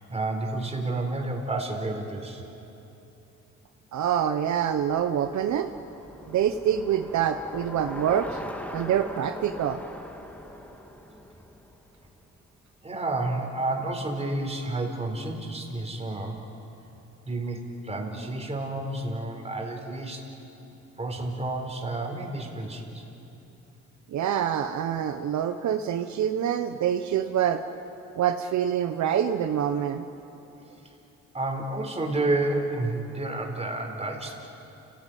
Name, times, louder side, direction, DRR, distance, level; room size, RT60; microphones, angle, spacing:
voice 1, 0.0-2.4 12.8-16.4 17.3-20.2 21.0-23.0 31.3-34.3, right 2 dB, 20° right, 3 dB, 4.4 m, -30 dB
voice 2, 3.9-5.7 6.3-8.4 8.7-9.8 24.1-27.6 28.2-30.0, right 9 dB, 70° right, 8 dB, 1.0 m, -26 dB
Bicycle, 4.1-12.5, equal, 5° left, 2.4 m, -42 dB
29.5 x 16.5 x 9.3 m, 3.0 s
cardioid pair, 90°, 30 cm